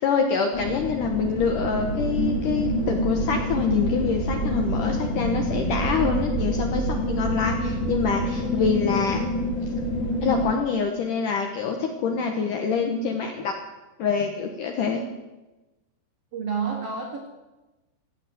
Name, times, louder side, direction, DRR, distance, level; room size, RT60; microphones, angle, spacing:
voice 1, 0.0-9.2 10.2-13.6 14.0-15.1, left 5 dB, 75° left, 3 dB, 2.0 m, -26 dB
sound 1, 0.5-10.5, equal, 35° left, 2.1 m, -27 dB
voice 2, 16.3-17.3, right 5 dB, 75° right, 2 dB, 1.4 m, -29 dB
15.5 x 8.5 x 7.7 m, 1.1 s
omnidirectional pair, 5.0 m